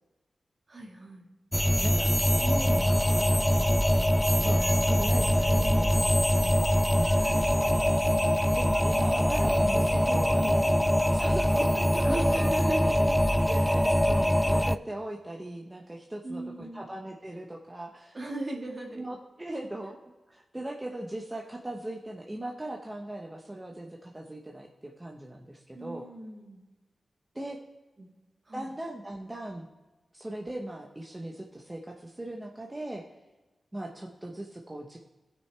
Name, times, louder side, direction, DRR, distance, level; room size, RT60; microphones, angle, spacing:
voice 1, 0.7-1.3 2.4-3.9 5.5-6.2 7.2-7.8 9.4-13.1 13.5-13.7 16.2-16.9 18.1-19.1 25.7-26.6 28.0-28.1 28.5-28.7, right 1 dB, 45° right, 1 dB, 1.9 m, -38 dB
sound 1, 1.5-14.8, equal, 5° left, 0.3 m, -24 dB
voice 2, 1.8-2.1 3.3-3.5 4.3-4.6 4.9-5.9 6.1-6.2 6.9-7.2 8.6-10.3 11.1-12.0 12.3-12.4 13.1-13.2 13.7-18.2 19.0-20.0 20.3-26.0 27.3-27.6 28.5-29.7 30.1-33.0 33.7-35.0, right 1 dB, 20° right, 0 dB, 1.1 m, -39 dB
17.0 x 6.3 x 3.4 m, 1.1 s
cardioid pair, 60°, 0 cm